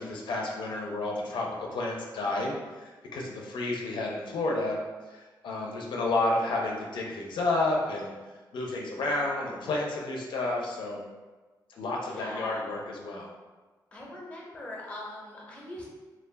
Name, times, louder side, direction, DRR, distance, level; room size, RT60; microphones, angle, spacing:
voice 1, 0.0-4.8 5.1-8.1 8.5-11.0 11.7-13.3, left 2 dB, 90° left, -1 dB, 0.4 m, -31 dB
voice 2, 12.1-12.7 13.9-15.8, left 1 dB, 15° left, -4 dB, 0.6 m, -41 dB
2.2 x 2.1 x 3.3 m, 1.3 s
wide cardioid pair, 150°, 8 cm